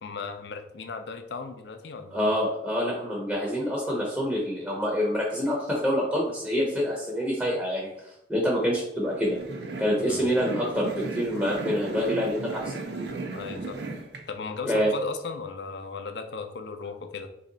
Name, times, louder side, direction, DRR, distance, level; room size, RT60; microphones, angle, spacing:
voice 1, 0.0-2.3 10.1-10.3 13.3-13.8 14.3-17.3, left 4 dB, 70° left, 7 dB, 0.4 m, -36 dB
voice 2, 2.1-7.9 8.3-9.4 9.8-12.7 14.6-14.9, equal, 5° right, -3 dB, 0.6 m, -26 dB
sound 1, 9.0-14.2, right 3 dB, 70° right, 0.5 m, -36 dB
3.1 x 2.7 x 3.8 m, 0.84 s
head